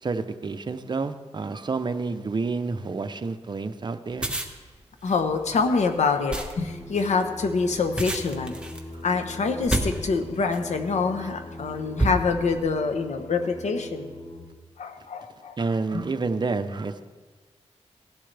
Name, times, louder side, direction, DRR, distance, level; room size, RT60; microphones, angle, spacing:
voice 1, 0.0-4.4 11.2-11.3 15.6-17.0, right 4 dB, 40° right, 9 dB, 0.7 m, -29 dB
sound 1, 4.1-10.8 11.4-11.6 12.0-12.7, right 2 dB, 10° right, 1.3 m, -31 dB
voice 2, 5.0-8.5 9.0-14.1 14.8-15.6 15.9-16.0, left 4 dB, 85° left, 6 dB, 1.1 m, -26 dB
Singing, 6.5-14.4, left 2 dB, 25° left, 3.2 m, -41 dB
17.5 x 11.5 x 3.4 m, 1.4 s
wide cardioid pair, 95°, 12 cm